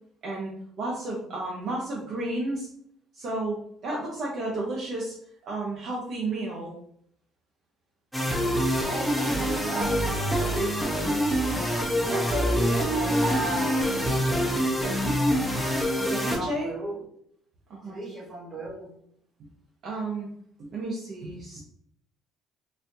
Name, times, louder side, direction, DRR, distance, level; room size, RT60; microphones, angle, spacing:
voice 1, 0.8-2.7 3.1-5.2 5.4-6.7 16.0-16.7 17.7-18.0 19.8-20.3 20.6-21.6, right 2 dB, 55° right, -4 dB, 0.8 m, -32 dB
sound 1, 8.1-16.4, equal, ahead, 0.6 m, -25 dB
voice 2, 8.8-10.8 12.1-14.5 16.3-17.0 17.9-18.9, right 1 dB, 30° right, -3 dB, 1.4 m, -35 dB
4.1 x 2.6 x 2.7 m, 0.67 s
cardioid pair, 140°, 0 cm